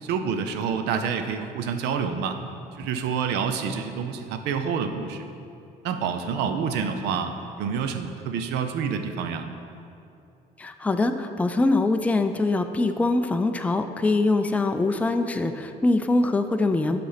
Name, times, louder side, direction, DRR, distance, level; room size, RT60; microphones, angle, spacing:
voice 1, 0.0-2.4 2.8-5.2 5.8-9.5, right 6 dB, 85° right, 7 dB, 0.6 m, -28 dB
voice 2, 10.6-17.0, left 2 dB, 10° left, 7 dB, 0.4 m, -23 dB
8.4 x 4.2 x 5.7 m, 2.6 s
cardioid pair, 110°, 17 cm